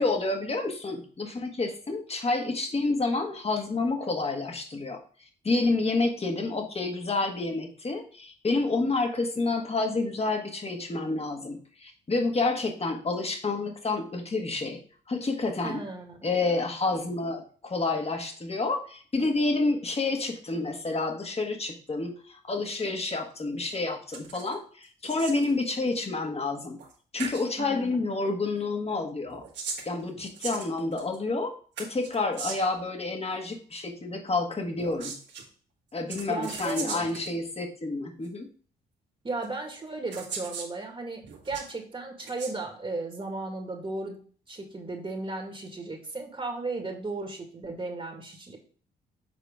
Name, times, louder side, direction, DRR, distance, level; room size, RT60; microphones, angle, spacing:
voice 1, 0.0-5.0 5.4-14.8 15.1-15.8 16.2-26.8 27.1-29.4 29.9-31.5 31.8-35.2 35.9-38.5, left 3 dB, 35° left, 4 dB, 1.7 m, -29 dB
voice 2, 15.6-16.3 27.6-28.1 36.3-37.1 39.2-44.2 44.5-48.6, right 3 dB, 30° right, 2 dB, 1.9 m, -35 dB
sound 1, 24.1-24.5 24.8-25.5 26.8-26.9 27.2-27.5 29.2-31.2 31.8-32.8 34.7-35.4 36.1-37.3 38.2-38.3 39.4-39.5 40.1-40.7 41.2-41.7 42.2-42.5, right 5 dB, 75° right, 1.5 m, -38 dB
6.9 x 4.4 x 3.6 m, 0.43 s
supercardioid pair, 60°, 18 cm